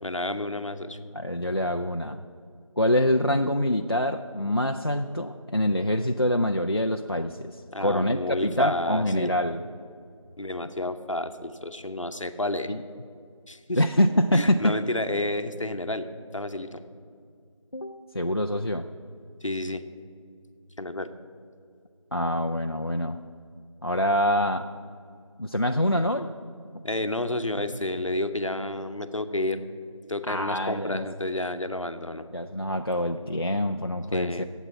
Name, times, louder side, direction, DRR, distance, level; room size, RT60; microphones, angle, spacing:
voice 1, 0.0-1.0 7.7-9.3 10.4-12.7 13.5-13.8 14.3-16.1 16.3-16.8 19.4-19.8 20.8-21.1 26.8-29.6 30.1-32.2 34.1-34.4, left 1 dB, 65° left, 9 dB, 1.0 m, -30 dB
voice 2, 1.1-2.2 2.8-9.6 12.7-12.8 13.8-14.8 17.7-18.9 22.1-23.2 23.8-24.7 25.4-26.3 30.3-31.1 32.3-34.4, left 1 dB, 45° left, 4 dB, 0.4 m, -25 dB
9.3 x 8.1 x 9.5 m, 2.3 s
figure-of-eight pair, 175°, 17 cm